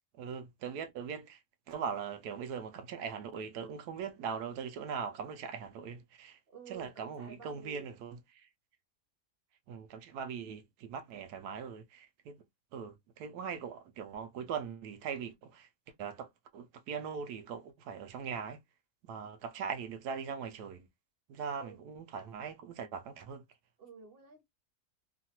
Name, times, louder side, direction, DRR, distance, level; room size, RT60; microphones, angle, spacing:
voice 1, 0.2-1.4 1.7-6.4 6.7-8.5 9.7-12.4 12.7-15.7 16.0-18.6 19.0-20.9 21.3-23.4, right 6 dB, 80° right, 1.1 m, -41 dB
voice 2, 6.5-8.0 21.6-21.8 23.8-24.5, right 5 dB, 50° right, 0.8 m, -51 dB
3.1 x 2.2 x 2.8 m
omnidirectional pair, 1.7 m